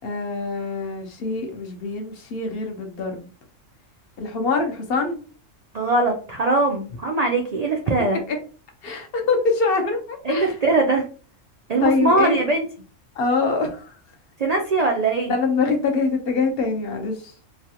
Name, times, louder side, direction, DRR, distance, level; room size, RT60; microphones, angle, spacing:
voice 1, 0.0-3.3 4.2-5.2 8.3-8.4 8.8-10.5 11.8-12.4 13.2-13.9 15.3-17.3, left 4 dB, 55° left, 3 dB, 0.8 m, -24 dB
voice 2, 5.7-8.2 10.2-11.0 11.7-12.7 14.4-15.3, right 3 dB, 85° right, 1 dB, 0.3 m, -21 dB
3.2 x 2.3 x 2.7 m, 0.38 s
omnidirectional pair, 1.3 m